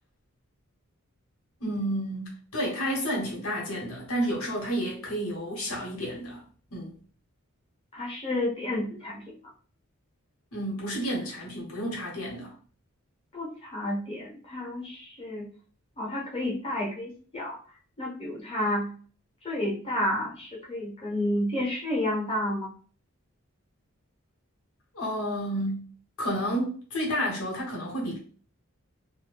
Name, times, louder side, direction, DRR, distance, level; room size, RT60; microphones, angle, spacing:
voice 1, 1.6-6.4 6.7-6.9 10.5-12.5 24.9-25.9 26.2-28.2, equal, 90° left, -2 dB, 1.2 m, -31 dB
voice 2, 7.9-9.3 13.3-15.5 16.0-17.6 18.0-18.9 19.4-22.7, left 1 dB, 25° left, -3 dB, 1.0 m, -30 dB
2.6 x 2.2 x 3.3 m, 0.42 s
head